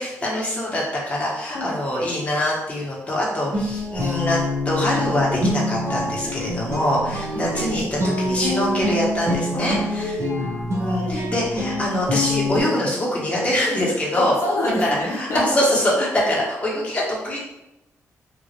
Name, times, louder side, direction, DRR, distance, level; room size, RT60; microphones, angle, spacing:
voice 1, 0.0-4.4 4.6-10.2 10.8-14.3 14.8-17.4, left 1 dB, 20° left, -6 dB, 1.0 m, -24 dB
Guitar, 3.5-12.6, left 1 dB, 50° right, 0.7 m, -25 dB
voice 2, 9.5-11.3 14.2-15.4, left 1 dB, 55° left, -5 dB, 0.6 m, -28 dB
3.0 x 2.4 x 2.8 m, 0.92 s
cardioid pair, 100°, 6 cm